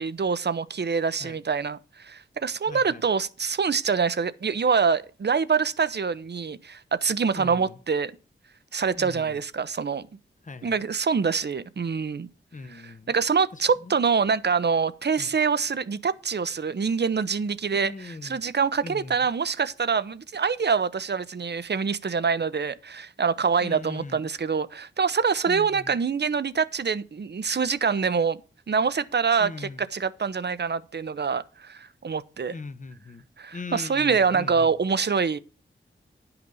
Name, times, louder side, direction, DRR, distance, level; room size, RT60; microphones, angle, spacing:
voice 1, 0.0-8.1 8.7-10.0 10.6-12.3 12.8-28.4 28.7-32.5 33.4-35.4, right 5 dB, 55° right, 0.7 m, -25 dB
voice 2, 2.7-3.0 7.3-7.8 8.9-9.4 10.4-10.8 12.5-13.1 13.5-13.9 15.2-15.3 17.7-18.4 18.8-19.3 23.6-24.3 25.5-26.0 29.4-29.8 32.5-33.3 33.5-34.8, left 3 dB, 40° left, 0.8 m, -40 dB
10.5 x 5.9 x 5.4 m
cardioid pair, 60°, 21 cm